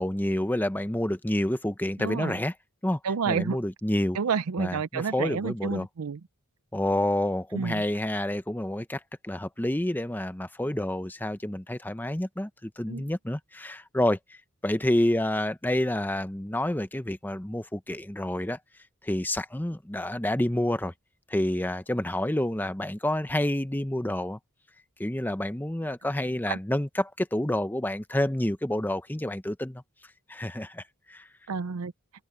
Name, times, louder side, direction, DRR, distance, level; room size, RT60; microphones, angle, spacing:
voice 1, 0.0-2.5 2.8-3.0 3.3-4.2 4.6-5.9 6.7-14.4 14.6-18.6 19.0-20.9 21.3-24.4 25.0-29.8 30.3-31.3, left 1 dB, 10° left, 0.8 m, -28 dB
voice 2, 2.0-2.4 3.0-3.6 4.1-6.2 7.5-7.8 12.9-13.0 26.5-26.6 31.5-31.9, right 5 dB, 80° right, 0.5 m, -30 dB
open air
head